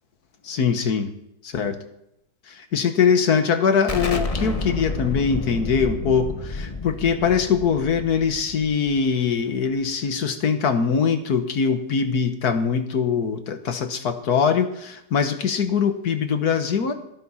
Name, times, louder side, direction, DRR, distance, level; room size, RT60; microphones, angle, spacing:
voice 1, 0.4-1.1 1.4-1.8 2.5-16.9, left 6 dB, 60° left, 8 dB, 1.7 m, -22 dB
Explosion, 3.9-9.3, left 3 dB, 25° left, 0.9 m, -30 dB
17.0 x 14.5 x 4.2 m, 0.80 s
omnidirectional pair, 1.9 m